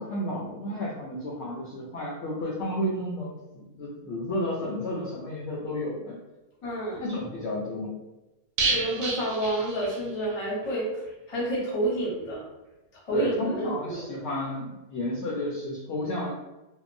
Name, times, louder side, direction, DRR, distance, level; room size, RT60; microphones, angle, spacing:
voice 1, 0.0-6.2 7.0-7.9 13.1-16.3, left 1 dB, 65° left, -4 dB, 0.7 m, -32 dB
voice 2, 6.6-7.0 8.7-10.9 11.3-12.4 13.1-14.0, right 1 dB, 30° left, -5 dB, 0.7 m, -29 dB
sound 1, 8.6-10.4 10.6-10.7 11.1-11.2, right 3 dB, 85° right, 1.1 m, -30 dB
2.8 x 2.1 x 2.5 m, 1.0 s
omnidirectional pair, 1.6 m